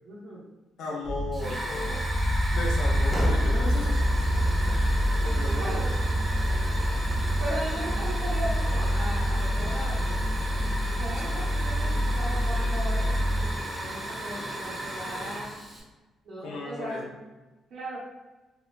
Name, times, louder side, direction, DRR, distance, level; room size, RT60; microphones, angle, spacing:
voice 1, 0.0-0.4 5.6-5.9 7.4-10.2 10.8-15.6 16.2-17.1 17.7-18.0, right 1 dB, 60° right, -7 dB, 0.9 m, -37 dB
voice 2, 0.8-2.0 2.5-4.0 4.6-4.8 5.2-5.8 16.4-17.0, left 2 dB, 75° left, -2 dB, 0.5 m, -35 dB
sound 1, 1.0-13.5, equal, 50° left, 1.0 m, -28 dB
Hiss / Fire, 1.3-15.8, right 1 dB, 10° right, 0.8 m, -35 dB
sound 2, 1.9-13.7, equal, 30° right, 0.3 m, -31 dB
3.1 x 2.4 x 2.2 m, 1.1 s
cardioid pair, 90°, 0 cm